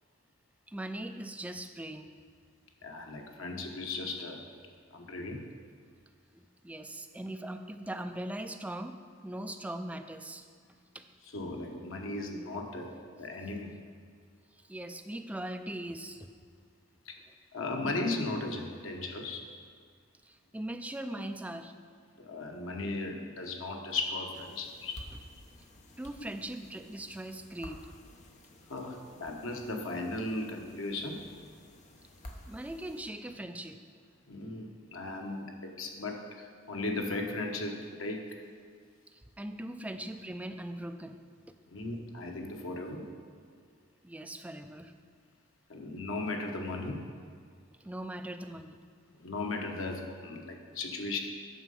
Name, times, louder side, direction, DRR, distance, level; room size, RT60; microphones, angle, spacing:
voice 1, 0.7-2.1 6.3-9.0 9.2-10.4 10.9-11.0 14.7-16.3 20.2-21.7 26.0-27.9 32.5-33.8 39.1-41.2 44.0-44.9 47.8-48.8, right 1 dB, 5° right, 6 dB, 0.4 m, -40 dB
voice 2, 2.8-4.4 4.9-5.5 11.3-13.8 17.0-17.1 17.5-19.5 21.1-21.2 22.2-25.0 28.7-31.3 34.3-38.4 41.7-43.1 45.7-47.0 49.2-51.2, left 2 dB, 85° left, 2 dB, 1.1 m, -36 dB
sound 1, 24.3-33.0, left 1 dB, 35° left, 0.8 m, -52 dB
9.0 x 6.6 x 5.3 m, 2.1 s
head